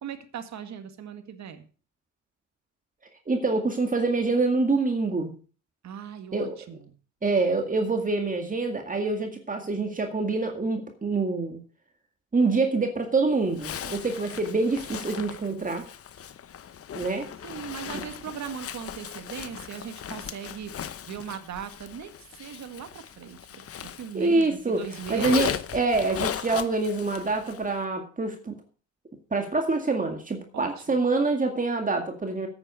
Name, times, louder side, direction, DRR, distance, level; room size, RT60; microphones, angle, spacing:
voice 1, 0.0-1.7 5.8-6.9 17.4-20.7 21.1-25.5 30.5-31.0, right 8 dB, 65° right, 8 dB, 2.0 m, -39 dB
voice 2, 3.3-5.3 6.3-6.6 7.2-11.6 12.3-15.8 16.9-17.3 24.1-24.8 25.1-28.6 29.3-32.5, right 3 dB, 25° right, 4 dB, 2.1 m, -26 dB
Zipper (clothing), 13.5-24.4 24.7-27.7, left 9 dB, 50° left, 0.9 m, -37 dB
9.7 x 8.9 x 6.4 m, 0.38 s
cardioid pair, 90°, 30 cm